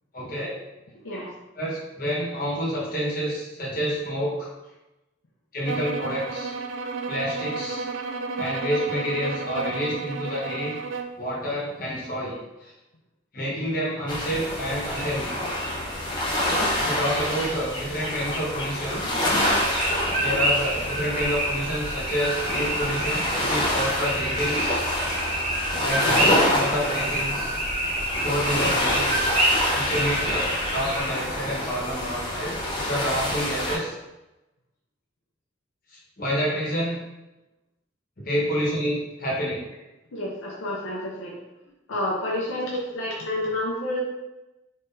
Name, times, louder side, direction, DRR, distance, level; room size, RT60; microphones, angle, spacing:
voice 1, 0.1-0.6 1.1-1.2 1.5-4.5 5.5-6.5 7.1-7.9 8.4-10.8 11.2-12.7 13.3-15.4 16.8-19.2 20.1-24.8 25.8-27.6 28.2-29.3 29.7-33.9 36.2-37.0 38.2-39.6, equal, 45° left, -5 dB, 1.2 m, -28 dB
sound 1, 5.6-11.2, right 4 dB, 70° right, 0.3 m, -32 dB
sound 2, 14.1-33.8, left 1 dB, 20° left, 0.7 m, -27 dB
sound 3, 19.4-31.0, right 1 dB, 35° right, 0.8 m, -28 dB
voice 2, 40.1-41.3 41.9-44.0, left 1 dB, 80° left, -4 dB, 0.7 m, -29 dB
3.8 x 3.1 x 2.6 m, 0.99 s
head